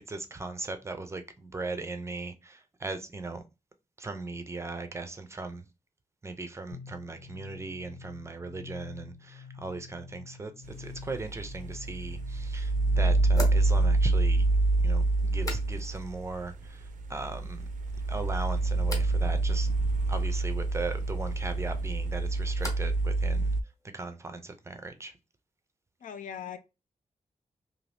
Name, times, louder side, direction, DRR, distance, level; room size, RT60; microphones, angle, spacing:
voice 1, 0.1-3.4 4.0-5.7 6.2-10.5 10.8-14.4 14.8-17.7 18.1-19.7 20.1-23.5 23.9-25.1, right 3 dB, 20° right, 0.4 m, -38 dB
sound 1, 6.7-14.3, left 6 dB, 65° left, 1.0 m, -47 dB
sound 2, 10.7-23.6, right 2 dB, 85° right, 0.4 m, -27 dB
sound 3, 13.3-16.2 16.4-17.0 17.4-18.0 18.8-19.2 21.6-23.0 23.3-23.9, left 1 dB, 25° left, 0.9 m, -43 dB
voice 2, 26.0-26.6, left 8 dB, 85° left, 0.5 m, -39 dB
2.7 x 2.6 x 3.2 m
wide cardioid pair, 175°, 13 cm